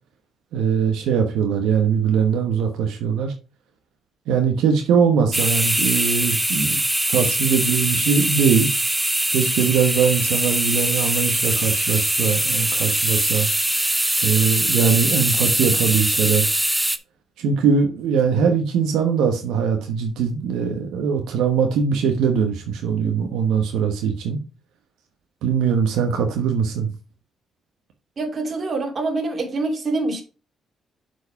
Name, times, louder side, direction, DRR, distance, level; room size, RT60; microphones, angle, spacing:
voice 1, 0.5-3.3 4.3-6.8 7.1-8.7 9.3-13.5 14.2-16.5 17.4-24.4 25.4-26.9, right 6 dB, 90° right, 1.1 m, -21 dB
sound 1, 5.3-17.0, right 1 dB, 10° right, 0.7 m, -22 dB
voice 2, 28.2-30.2, right 3 dB, 45° right, 2.3 m, -25 dB
7.0 x 4.7 x 4.6 m
cardioid pair, 90°, 0 cm